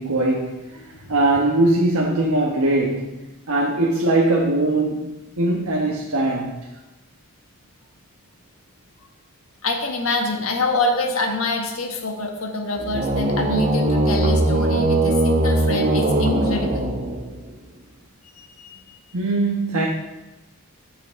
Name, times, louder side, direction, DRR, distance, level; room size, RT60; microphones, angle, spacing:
voice 1, 0.0-0.8 1.1-6.7 19.1-19.9, right 2 dB, 80° right, 1.2 m, -21 dB
voice 2, 0.8-1.1 9.6-16.9 18.4-18.8, left 2 dB, 70° left, 1.6 m, -26 dB
sound 1, 12.8-17.5, right 1 dB, 35° right, 1.1 m, -20 dB
14.5 x 6.7 x 3.7 m
head